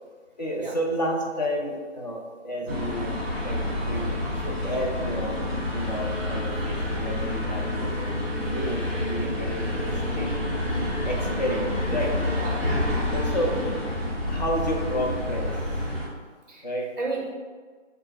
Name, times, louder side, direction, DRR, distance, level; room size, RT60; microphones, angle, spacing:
voice 1, 0.4-3.1 3.4-3.6 3.9-5.4 5.7-10.3 11.0-12.1 13.1-13.5 14.3-15.5 16.6-16.9, equal, 35° left, -2 dB, 0.7 m, -31 dB
sound 1, 2.7-16.1, left 1 dB, 15° right, 0.9 m, -28 dB
voice 2, 11.0-11.4 12.4-12.7 16.5-16.7 17.0-17.3, right 3 dB, 40° right, -1 dB, 0.5 m, -34 dB
4.2 x 2.2 x 4.6 m, 1.5 s
figure-of-eight pair, 170°, 36 cm